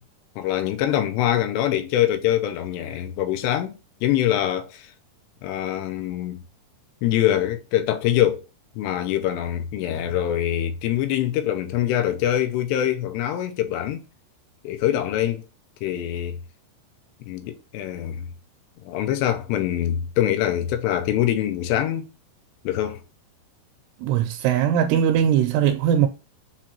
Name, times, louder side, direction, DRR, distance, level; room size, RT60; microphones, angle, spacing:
voice 1, 0.4-4.9 5.4-6.4 7.0-8.4 8.8-14.0 14.6-15.4 15.8-16.4 17.2-18.2 18.9-22.1 22.6-23.0, left 11 dB, 85° left, 2.9 m, -24 dB
voice 2, 24.0-26.1, right 9 dB, 85° right, 2.6 m, -20 dB
7.2 x 2.6 x 2.8 m
omnidirectional pair, 4.9 m